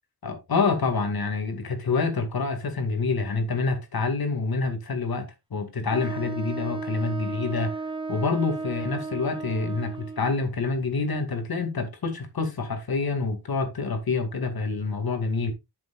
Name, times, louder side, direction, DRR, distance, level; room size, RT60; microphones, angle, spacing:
voice 1, 0.2-7.7 8.1-15.5, left 4 dB, 65° left, 2.2 m, -27 dB
Wind instrument woodwind instrument, 5.9-10.3, right 3 dB, 15° right, 1.3 m, -34 dB
11.0 x 7.1 x 2.4 m
wide cardioid pair, 125°, 40 cm